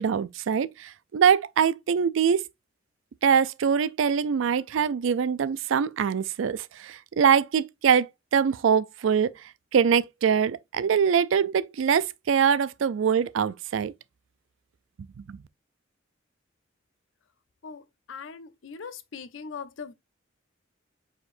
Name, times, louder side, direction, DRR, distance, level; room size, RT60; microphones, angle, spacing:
voice 1, 0.0-2.5 3.2-9.3 9.7-13.9 15.2-15.4, right 7 dB, 80° right, 0.4 m, -23 dB
voice 2, 18.1-19.9, left 5 dB, 75° left, 0.5 m, -40 dB
4.9 x 4.4 x 2.5 m
head